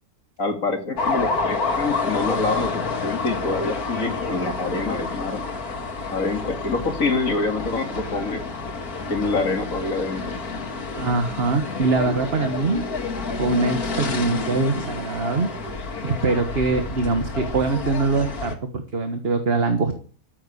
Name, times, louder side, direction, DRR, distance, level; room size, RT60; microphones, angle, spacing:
voice 1, 0.4-5.4 6.1-8.4 9.1-10.4, left 3 dB, 65° left, 5 dB, 2.8 m, -26 dB
sound 1, 1.0-18.6, left 3 dB, 85° left, 2.5 m, -29 dB
voice 2, 11.0-12.9 13.4-15.5 16.0-20.0, right 3 dB, 45° right, 6 dB, 1.6 m, -23 dB
13.5 x 8.5 x 8.5 m, 0.40 s
omnidirectional pair, 1.5 m